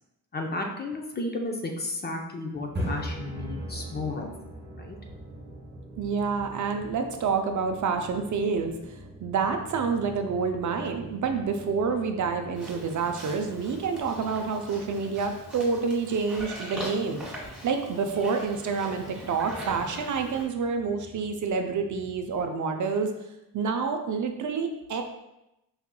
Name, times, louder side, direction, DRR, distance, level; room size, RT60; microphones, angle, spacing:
voice 1, 0.3-4.3 4.8-5.0, left 2 dB, 25° left, 2 dB, 0.4 m, -33 dB
sound 1, 2.5-22.4, right 1 dB, 30° right, 0.9 m, -43 dB
voice 2, 6.0-17.2 17.6-23.1 23.5-25.0, right 5 dB, 55° right, 5 dB, 0.5 m, -28 dB
Livestock farm animals working animals, 12.5-20.4, equal, ahead, 1.3 m, -42 dB
4.8 x 2.8 x 2.2 m, 0.90 s
cardioid pair, 100°, 37 cm